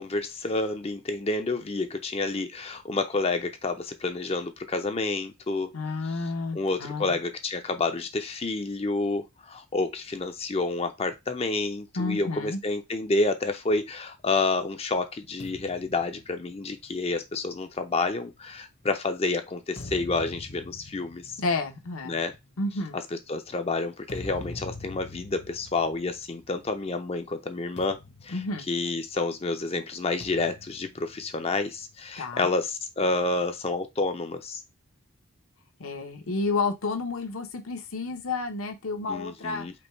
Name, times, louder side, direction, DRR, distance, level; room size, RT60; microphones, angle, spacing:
voice 1, 0.0-5.7 6.5-21.4 22.1-22.3 23.1-28.0 28.2-28.4 28.7-34.6 39.1-39.7, left 3 dB, 25° left, 0.5 m, -29 dB
voice 2, 5.7-7.2 12.0-12.6 21.4-22.2 22.6-23.0 28.3-28.7 32.2-32.5 35.8-39.7, left 3 dB, 75° left, 0.9 m, -30 dB
sound 1, 15.4-19.0 19.5-26.9 27.2-27.4 27.8-29.4 30.2-32.0, left 2 dB, 50° left, 0.8 m, -45 dB
5.2 x 2.3 x 4.4 m
head